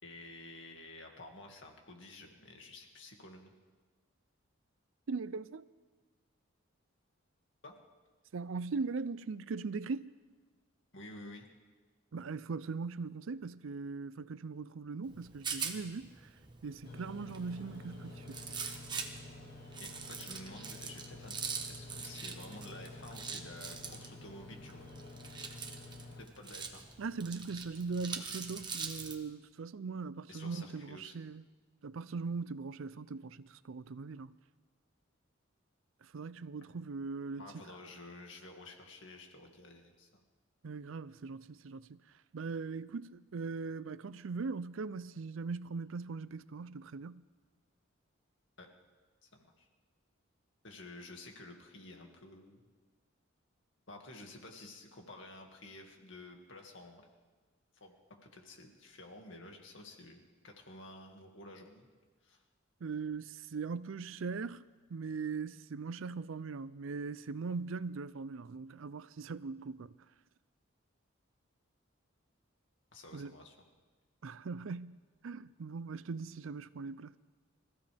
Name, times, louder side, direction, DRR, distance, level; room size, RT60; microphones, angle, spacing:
voice 1, 0.0-3.5 7.6-7.8 10.9-11.5 19.8-24.9 26.2-26.8 30.3-31.2 37.4-40.2 48.6-48.7 49.2-49.7 50.6-52.7 53.9-57.0 57.7-61.9 62.2-62.4 72.9-73.5, left 2 dB, 65° left, 2.2 m, -51 dB
voice 2, 5.1-5.6 8.3-10.1 12.1-16.1 16.6-18.4 27.0-31.4 31.8-34.3 36.0-37.5 40.6-42.0 42.3-47.2 62.8-64.6 64.9-70.0 73.1-73.4 74.2-75.0 75.2-77.2, right 4 dB, 75° right, 0.5 m, -40 dB
Rattle, 15.0-29.2, right 5 dB, 20° right, 1.1 m, -44 dB
sound 1, 16.8-26.2, left 2 dB, 50° left, 2.2 m, -50 dB
26.0 x 15.0 x 3.5 m
head